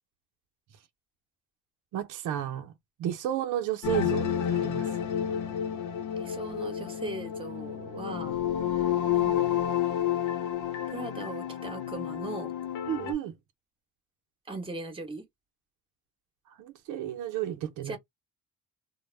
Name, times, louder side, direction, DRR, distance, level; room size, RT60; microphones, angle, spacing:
voice 1, 1.9-2.7 3.0-4.9 12.9-13.3 16.6-18.0, right 12 dB, 85° right, 0.6 m, -32 dB
sound 1, 3.8-13.1, left 9 dB, 80° left, 0.7 m, -30 dB
voice 2, 6.2-8.4 9.1-9.6 10.9-12.5 14.5-15.2 17.8-18.0, right 2 dB, 15° right, 1.0 m, -39 dB
2.1 x 2.0 x 3.1 m
cardioid pair, 90°, 30 cm